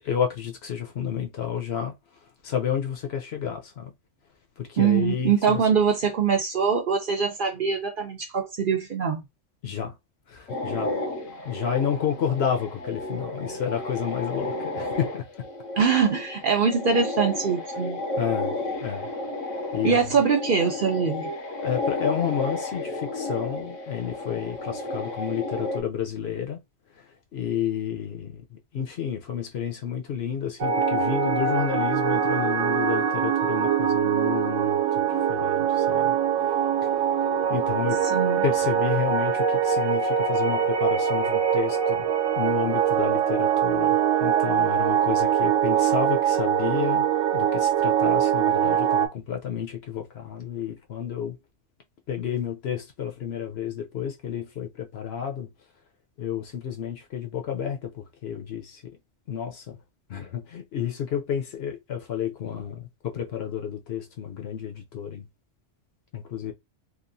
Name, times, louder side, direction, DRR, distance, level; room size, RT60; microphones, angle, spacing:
voice 1, 0.0-1.9 2.4-3.9 4.6-5.6 9.6-9.9 10.3-10.9 11.4-15.3 18.2-18.6 18.8-19.1 19.7-20.0 21.6-26.6 27.0-36.2 37.5-38.0 38.4-47.1 47.3-51.4 52.1-55.5 56.2-58.8 59.3-59.8 60.1-65.3 66.1-66.5, left 8 dB, 60° left, 0.9 m, -30 dB
voice 2, 4.8-9.2 15.8-18.0 19.8-21.3 38.1-38.4, right 6 dB, 55° right, 0.7 m, -23 dB
sound 1, 10.5-25.8, left 2 dB, 85° left, 1.1 m, -32 dB
sound 2, 30.6-49.1, right 8 dB, 80° right, 0.9 m, -23 dB
2.9 x 2.4 x 2.6 m
omnidirectional pair, 1.3 m